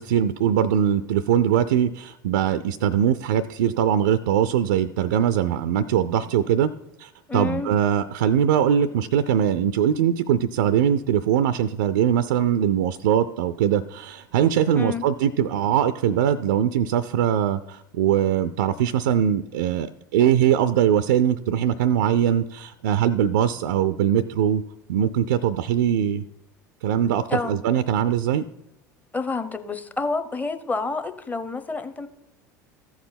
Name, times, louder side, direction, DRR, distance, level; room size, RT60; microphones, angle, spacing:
voice 1, 0.0-6.7 7.0-24.6 24.9-26.2 26.8-28.5, right 9 dB, 70° right, 13 dB, 0.4 m, -21 dB
voice 2, 7.3-7.7 14.7-15.0 27.3-27.6 29.1-32.1, left 3 dB, 15° left, 10 dB, 0.8 m, -28 dB
14.0 x 4.7 x 5.8 m, 0.91 s
figure-of-eight pair, 75°, 10 cm